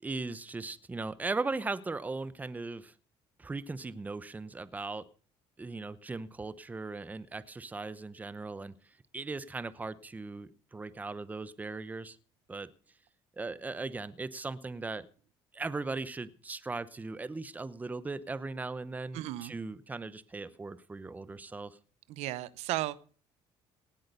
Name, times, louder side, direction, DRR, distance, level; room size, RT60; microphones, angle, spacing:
voice 1, 0.0-2.9 3.4-5.0 5.6-12.2 12.5-12.7 13.4-15.1 15.5-21.8, right 3 dB, 15° right, 16 dB, 0.8 m, -38 dB
voice 2, 19.1-19.5 22.1-23.0, right 16 dB, 75° right, 18 dB, 0.8 m, -34 dB
18.0 x 8.6 x 6.7 m, 0.42 s
cardioid pair, 120°, 11 cm